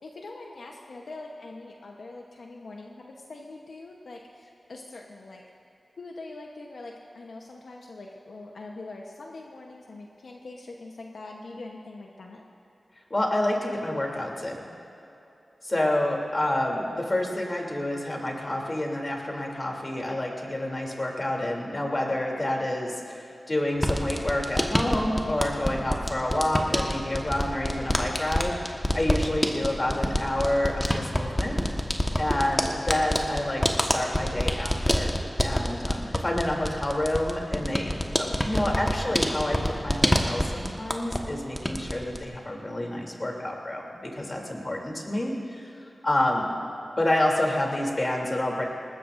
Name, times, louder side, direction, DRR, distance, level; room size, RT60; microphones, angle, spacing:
voice 1, 0.0-5.4 6.0-12.4, left 2 dB, 85° left, 0 dB, 1.0 m, -43 dB
voice 2, 13.1-14.6 15.6-31.6 32.2-35.1 35.4-37.9 38.2-45.7 46.0-46.5 47.0-48.7, left 1 dB, 35° left, 0 dB, 3.0 m, -28 dB
sound 1, 23.8-41.3 41.6-42.2, equal, 10° left, 1.3 m, -27 dB
20.0 x 20.0 x 2.6 m, 2.9 s
cardioid pair, 50°, 0 cm